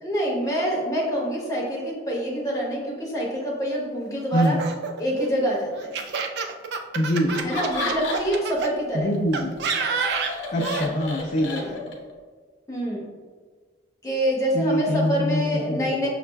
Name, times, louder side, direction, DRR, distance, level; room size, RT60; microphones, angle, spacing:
voice 1, 0.0-4.6 5.0-5.9 7.4-9.1 12.7-13.0 14.0-16.1, equal, 20° left, -4 dB, 0.8 m, -26 dB
Laughter, 4.3-8.7 9.3-10.9, right 5 dB, 60° right, 0.3 m, -29 dB
voice 2, 6.9-7.4 8.9-9.6 10.5-11.8 14.5-15.4 15.7-15.9, equal, 40° left, -4 dB, 0.4 m, -24 dB
Laughter 2, 7.3-8.6 8.9-12.1, left 2 dB, 80° left, 0.7 m, -32 dB
6.2 x 2.4 x 2.2 m, 1.5 s
head